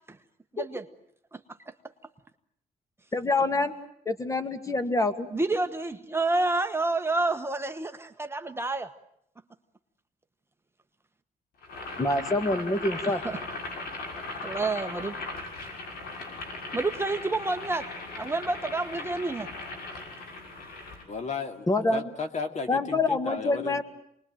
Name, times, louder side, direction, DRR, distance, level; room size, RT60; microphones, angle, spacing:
voice 1, 0.5-0.9 1.3-1.4 5.3-8.9 13.2-13.4 14.4-15.1 16.7-17.9 18.1-19.5, right 2 dB, 15° right, 7 dB, 1.2 m, -29 dB
voice 2, 3.1-3.7 4.1-5.3 12.0-13.2 21.7-22.1 22.7-23.8, left 2 dB, 20° left, 10 dB, 2.2 m, -26 dB
Boiling, 11.6-21.0, left 3 dB, 80° left, 6.5 m, -38 dB
voice 3, 21.1-21.7 21.9-23.8, left 4 dB, 50° left, 7 dB, 2.5 m, -34 dB
28.0 x 21.0 x 9.1 m, 0.76 s
cardioid pair, 115°, 16 cm